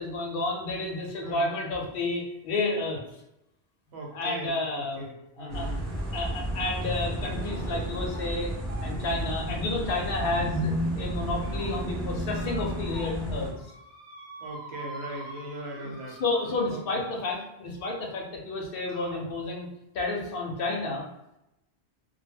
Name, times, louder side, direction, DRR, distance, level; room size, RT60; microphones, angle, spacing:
voice 1, 0.0-3.0 4.1-5.0 5.4-5.7 6.1-8.5 8.8-13.5 15.8-19.7 19.9-21.1, left 2 dB, 65° left, 0 dB, 0.7 m, -31 dB
voice 2, 1.2-1.6 3.9-5.8 14.4-16.2 16.7-16.8, right 2 dB, 75° right, -1 dB, 0.9 m, -39 dB
sound 1, 5.5-13.5, equal, ahead, 0.4 m, -32 dB
sound 2, 6.8-7.1 7.4-7.8 8.1-8.3 8.7-10.6 11.1-11.7 12.3-13.2 13.5-17.1 18.1-18.2 18.9-19.2, right 2 dB, 45° right, 0.7 m, -46 dB
2.2 x 2.1 x 3.3 m, 0.89 s
omnidirectional pair, 1.1 m